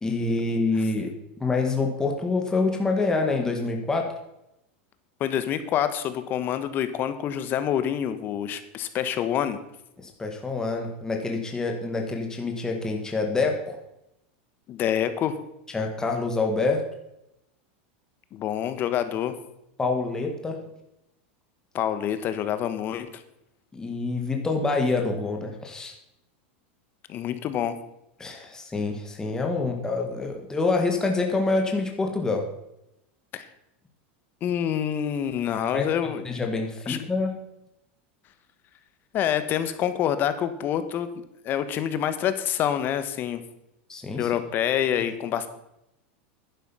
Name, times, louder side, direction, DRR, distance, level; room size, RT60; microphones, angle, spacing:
voice 1, 0.0-4.1 10.0-13.8 15.7-16.8 19.8-20.6 23.7-25.9 28.2-32.5 35.7-35.9 36.3-37.4 43.9-44.3, left 3 dB, 10° left, 2 dB, 1.7 m, -26 dB
voice 2, 5.2-9.6 14.7-15.4 18.3-19.3 21.7-23.2 27.1-27.8 33.3-33.5 34.4-36.2 36.9-37.0 39.1-41.1 41.4-43.4 44.2-45.5, left 10 dB, 35° left, 11 dB, 1.2 m, -27 dB
11.0 x 10.0 x 5.7 m, 0.86 s
supercardioid pair, 145°, 6 cm